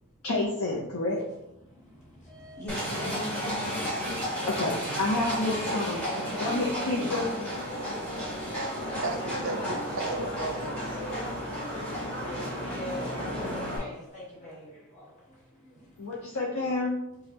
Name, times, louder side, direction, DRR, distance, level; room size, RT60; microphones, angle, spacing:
voice 1, 0.2-1.2 4.5-6.0 6.4-7.3 16.0-16.9, left 2 dB, 85° left, -3 dB, 0.7 m, -29 dB
voice 2, 1.3-4.4 5.2-7.5 11.4-16.4, equal, 35° left, -5 dB, 1.4 m, -44 dB
Livestock farm animals working animals, 2.7-13.8, equal, 5° left, 1.5 m, -32 dB
voice 3, 9.0-11.1, right 3 dB, 60° right, 5 dB, 0.5 m, -35 dB
5.2 x 2.3 x 2.9 m, 0.87 s
head